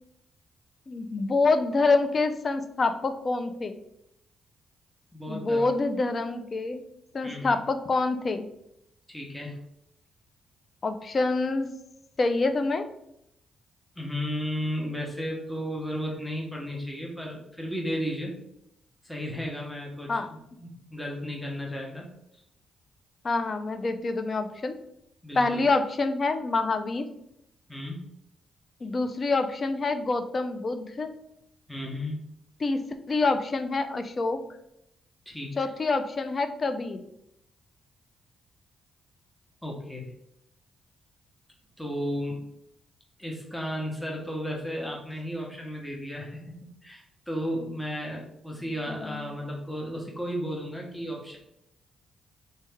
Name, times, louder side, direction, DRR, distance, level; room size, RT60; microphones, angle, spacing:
voice 1, 0.9-3.8 5.3-6.8 7.1-8.5 10.8-11.7 12.2-12.9 20.1-20.3 23.2-24.7 25.4-27.1 28.8-31.1 32.6-34.4 35.6-37.0 48.9-49.3, left 3 dB, 45° left, 9 dB, 0.4 m, -26 dB
voice 2, 5.1-5.7 7.2-7.6 9.1-9.6 14.0-18.3 19.0-22.1 25.2-25.6 27.7-28.0 31.7-32.2 35.3-35.5 39.6-40.1 41.8-42.4 43.2-51.4, equal, 5° left, -1 dB, 0.9 m, -34 dB
3.1 x 2.7 x 3.4 m, 0.79 s
supercardioid pair, 55°, 0 cm